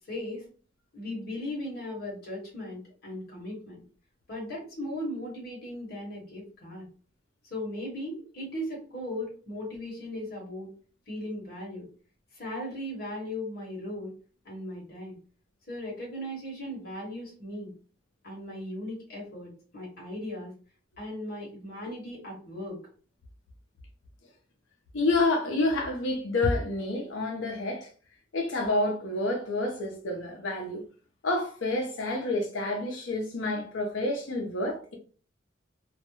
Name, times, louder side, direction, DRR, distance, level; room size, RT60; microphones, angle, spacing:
voice 1, 0.1-0.4 0.9-3.8 4.3-6.9 7.4-10.7 11.1-11.9 12.3-14.1 14.4-15.2 15.7-17.7 18.2-20.5 21.0-22.8, left 1 dB, 50° left, 1.0 m, -37 dB
voice 2, 24.9-27.9 28.3-30.8 31.2-34.9, left 2 dB, 75° left, 0.6 m, -28 dB
2.3 x 2.1 x 3.0 m
head